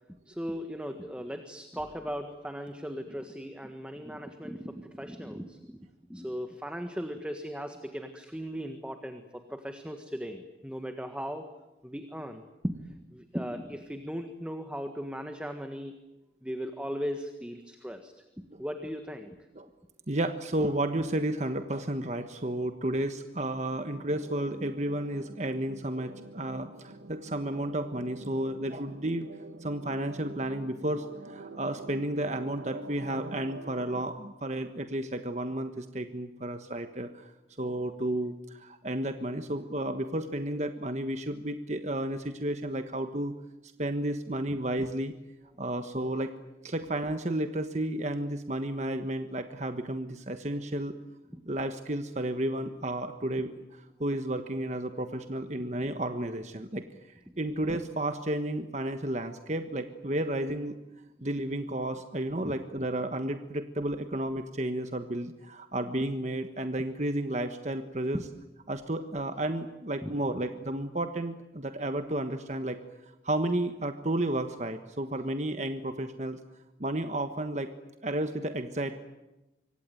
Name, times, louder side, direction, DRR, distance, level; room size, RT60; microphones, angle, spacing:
voice 1, 0.2-5.8 6.1-11.5 11.8-15.9 16.4-18.1 18.6-19.4 44.5-44.6 51.3-51.4 62.4-62.5 68.1-68.2 70.0-70.1, equal, 5° right, 6 dB, 1.6 m, -37 dB
voice 2, 20.1-29.3 29.6-37.3 37.6-43.3 43.8-45.1 45.6-46.3 46.6-50.9 51.5-56.8 57.4-60.8 61.2-68.2 68.7-72.8 73.2-76.4 76.8-77.7 78.0-79.0, right 1 dB, 40° right, 7 dB, 1.3 m, -32 dB
sound 1, 23.7-34.1, right 2 dB, 70° right, 1.6 m, -46 dB
26.0 x 24.5 x 9.2 m, 0.99 s
head